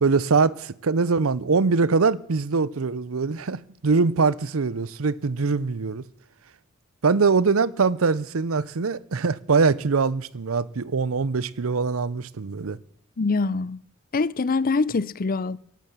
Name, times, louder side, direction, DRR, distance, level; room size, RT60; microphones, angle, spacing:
voice 1, 0.0-6.0 7.0-12.8, right 4 dB, 75° right, 0.7 m, -23 dB
voice 2, 13.2-13.8 14.1-15.6, left 3 dB, 45° left, 0.6 m, -24 dB
14.5 x 12.0 x 7.3 m
head